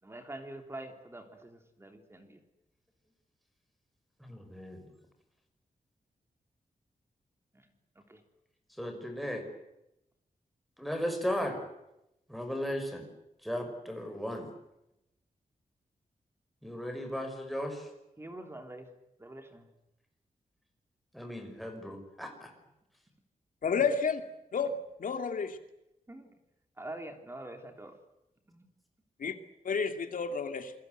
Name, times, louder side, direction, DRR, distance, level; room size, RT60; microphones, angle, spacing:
voice 1, 0.0-2.4 7.5-8.2 18.2-18.9 19.2-19.7 26.1-26.3 26.8-28.0 28.5-28.7, right 1 dB, 15° right, 3.3 m, -45 dB
voice 2, 4.2-4.8 8.8-9.5 10.8-11.6 12.3-13.1 13.4-14.5 16.6-17.9 21.1-22.5, equal, ahead, 5.8 m, -36 dB
voice 3, 23.6-24.2 24.5-24.7 25.0-25.6 29.2-29.3 29.6-30.7, left 5 dB, 70° left, 2.6 m, -30 dB
28.0 x 21.5 x 8.0 m
wide cardioid pair, 150°, 14 cm